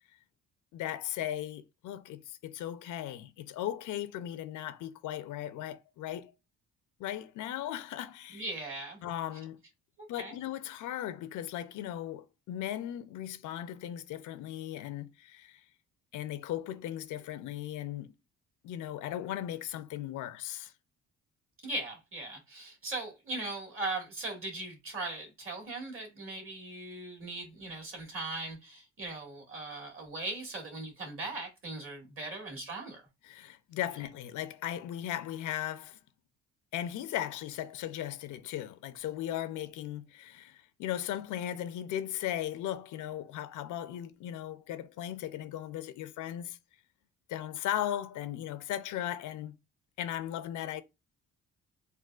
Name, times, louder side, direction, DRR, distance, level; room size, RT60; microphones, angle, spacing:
voice 1, 0.7-6.3 7.0-8.5 9.0-9.6 10.1-15.6 16.1-18.1 18.6-20.7 33.2-36.0 36.7-46.6 47.3-49.6 50.0-50.8, left 12 dB, 80° left, 0.5 m, -37 dB
voice 2, 8.3-9.0 10.2-10.4 21.6-33.0, right 2 dB, 45° right, 1.7 m, -39 dB
3.7 x 2.3 x 2.3 m
cardioid pair, 90°, 30 cm